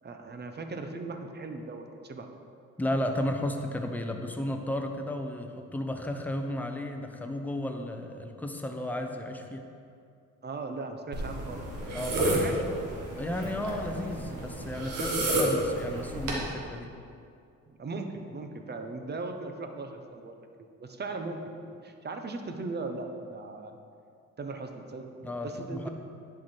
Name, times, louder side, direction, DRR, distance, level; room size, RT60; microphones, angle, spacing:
voice 1, 0.0-2.3 10.4-11.6 12.2-12.6 17.7-20.5 20.8-23.7 24.4-25.9, right 3 dB, 35° right, 5 dB, 0.8 m, -38 dB
voice 2, 2.8-9.6 11.9-12.4 13.2-16.9 25.2-25.9, left 1 dB, 5° left, 4 dB, 0.7 m, -33 dB
sound 1, 11.1-16.4, right 1 dB, 85° right, 1.5 m, -31 dB
10.5 x 4.7 x 4.5 m, 2.4 s
cardioid pair, 90°, 30 cm